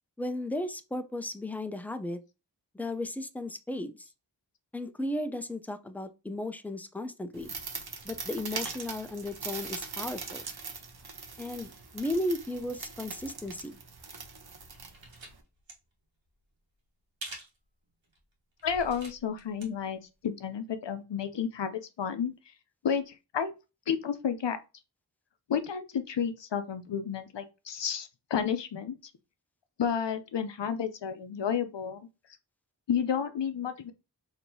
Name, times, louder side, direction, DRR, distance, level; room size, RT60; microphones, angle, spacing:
voice 1, 0.2-2.2 2.7-4.1 4.7-7.5 8.0-10.4 11.4-13.8, left 1 dB, 5° left, 0.4 m, -35 dB
sound 1, 7.3-15.4, right 5 dB, 60° right, 0.8 m, -41 dB
sound 2, 14.3-15.3 15.6-15.7 17.2-17.6 18.0-18.2 18.6-19.6 20.0-20.1, right 2 dB, 90° right, 1.2 m, -45 dB
voice 2, 18.6-22.3 22.8-23.5 23.9-24.6 25.5-29.0 29.8-32.1 32.9-33.9, left 7 dB, 70° left, 0.7 m, -31 dB
4.4 x 2.9 x 2.7 m
wide cardioid pair, 45°, 44 cm